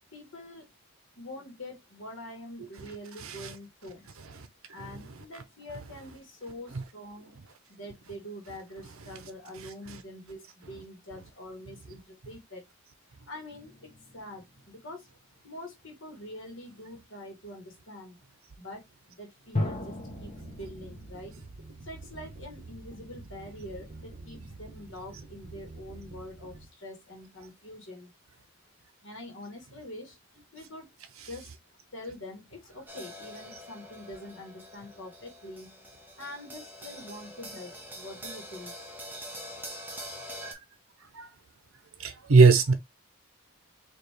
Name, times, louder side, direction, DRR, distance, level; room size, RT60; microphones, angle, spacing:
voice 1, 0.1-0.7 1.2-4.1 4.7-7.3 7.7-12.6 13.3-15.1 15.4-18.2 18.6-21.3 21.8-28.1 29.0-30.2 30.5-31.0 31.2-31.5 31.9-35.8 36.2-38.7, left 1 dB, 60° left, 1.6 m, -45 dB
sound 1, 13.5-14.8 19.5-21.4, left 2 dB, 30° left, 1.1 m, -36 dB
sound 2, 19.6-26.6, right 2 dB, 45° right, 1.2 m, -47 dB
sound 3, 32.9-40.5, equal, 10° right, 0.9 m, -44 dB
voice 2, 42.0-42.7, right 4 dB, 70° right, 0.7 m, -20 dB
4.3 x 2.9 x 3.2 m
head